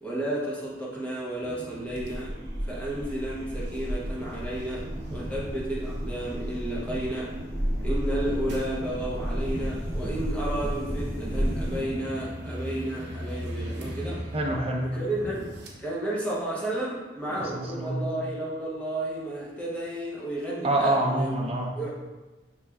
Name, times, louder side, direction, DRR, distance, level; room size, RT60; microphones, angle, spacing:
voice 1, 0.0-2.3 2.6-7.3 7.8-14.2 14.9-15.5 15.8-21.3 21.8-21.9, right 1 dB, 10° left, -6 dB, 0.7 m, -32 dB
sound 1, 1.4-15.7, equal, 65° right, 0.8 m, -38 dB
sound 2, 1.9-11.8, equal, 45° left, 1.1 m, -33 dB
voice 2, 14.3-14.9 17.3-18.0 20.6-21.7, right 1 dB, 35° right, -1 dB, 0.6 m, -26 dB
5.9 x 3.2 x 2.3 m, 1.2 s
head